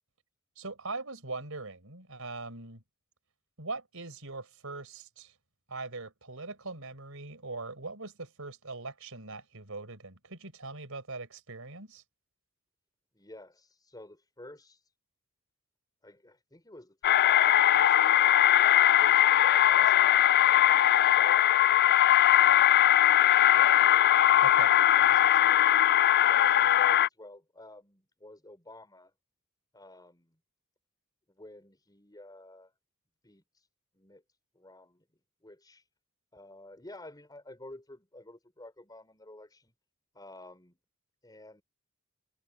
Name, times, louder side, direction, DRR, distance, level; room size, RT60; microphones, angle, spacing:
voice 1, 0.6-2.8 3.6-5.3 5.7-12.0 24.4-24.7, right 3 dB, 70° right, 5.8 m, -41 dB
voice 2, 13.1-14.8 16.0-21.5 22.3-22.8 23.5-23.9 24.7-25.9 26.2-29.1 29.7-30.4 31.3-32.7 33.2-33.4 33.9-34.2 34.5-35.0 35.4-35.8 36.3-39.7 40.1-40.8 41.2-41.6, left 1 dB, 20° left, 4.8 m, -51 dB
sound 1, 17.0-27.1, left 12 dB, 45° left, 0.3 m, -21 dB
head